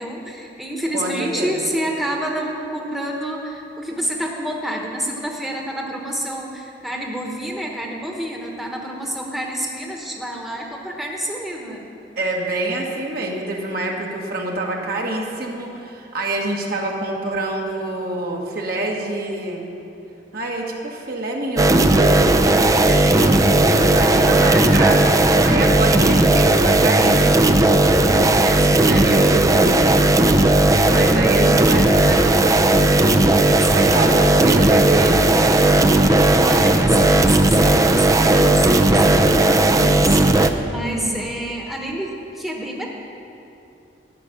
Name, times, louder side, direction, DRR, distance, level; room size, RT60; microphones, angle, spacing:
voice 1, 0.0-11.8 33.6-34.1 36.3-42.9, right 1 dB, ahead, -1 dB, 1.2 m, -28 dB
voice 2, 0.9-1.5 12.2-19.7 20.3-22.5 22.8-27.7 28.0-30.1 30.4-33.2 33.7-35.4 40.7-41.4, right 2 dB, 55° right, -1 dB, 1.8 m, -26 dB
sound 1, 21.6-40.5, right 2 dB, 20° right, 0.5 m, -15 dB
13.5 x 6.8 x 9.8 m, 2.8 s
head